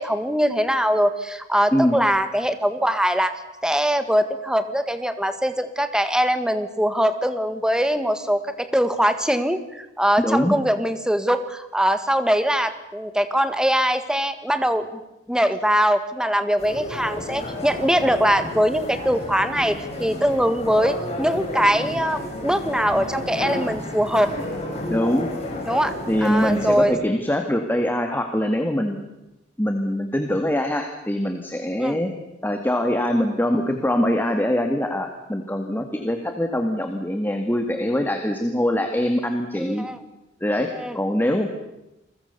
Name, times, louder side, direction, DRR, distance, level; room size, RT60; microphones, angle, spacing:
voice 1, 0.0-3.3 3.6-14.9 15.3-24.3 25.6-25.9 26.2-26.9 31.8-32.0 39.6-40.0 40.7-41.0, equal, 5° right, 10 dB, 1.7 m, -22 dB
voice 2, 10.2-10.6 24.9-25.3 26.1-29.0 29.6-32.1 32.4-39.9 40.4-41.5, left 1 dB, 10° left, 5 dB, 1.9 m, -23 dB
sound 1, 16.6-26.9, left 1 dB, 35° left, 6.9 m, -31 dB
29.0 x 21.5 x 6.8 m, 0.94 s
head